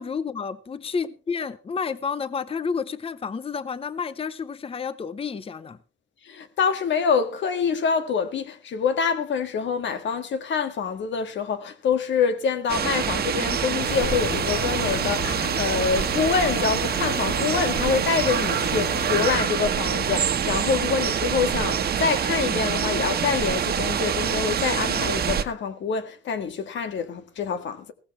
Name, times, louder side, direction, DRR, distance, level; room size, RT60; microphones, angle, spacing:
voice 1, 0.0-5.8, left 5 dB, 30° left, 0.7 m, -30 dB
voice 2, 6.3-27.9, left 6 dB, 70° left, 1.8 m, -26 dB
sound 1, 12.7-25.4, right 8 dB, 50° right, 1.2 m, -25 dB
sound 2, 13.8-19.4, left 12 dB, 85° left, 0.8 m, -35 dB
16.5 x 15.0 x 3.2 m
cardioid pair, 90°, 20 cm